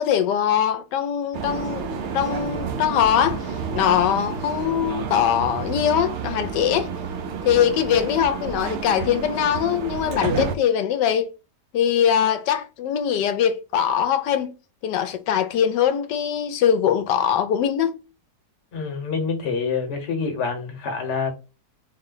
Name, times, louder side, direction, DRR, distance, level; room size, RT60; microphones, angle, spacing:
voice 1, 0.0-1.9 2.1-3.4 3.7-6.9 7.4-11.3 11.7-14.5 14.8-17.9, left 9 dB, 80° left, 1.2 m, -22 dB
sound 1, 1.3-10.6, right 5 dB, 65° right, 0.7 m, -30 dB
voice 2, 18.7-21.3, left 5 dB, 45° left, 1.2 m, -26 dB
4.2 x 2.1 x 3.8 m
omnidirectional pair, 1.9 m